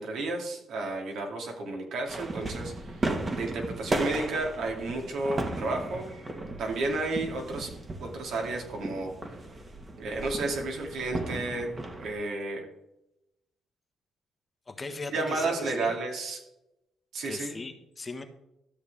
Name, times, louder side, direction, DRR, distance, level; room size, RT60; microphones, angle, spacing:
voice 1, 0.0-6.1 6.6-7.7 8.0-9.1 10.0-12.7 15.1-16.4 17.1-17.6, right 2 dB, 75° right, 1 dB, 2.6 m, -32 dB
sound 1, 2.1-12.1, right 2 dB, 30° right, 1.6 m, -36 dB
voice 2, 14.7-15.9 17.2-18.2, left 3 dB, 30° left, 6 dB, 1.3 m, -38 dB
13.0 x 6.9 x 3.5 m, 0.86 s
cardioid pair, 90°, 0 cm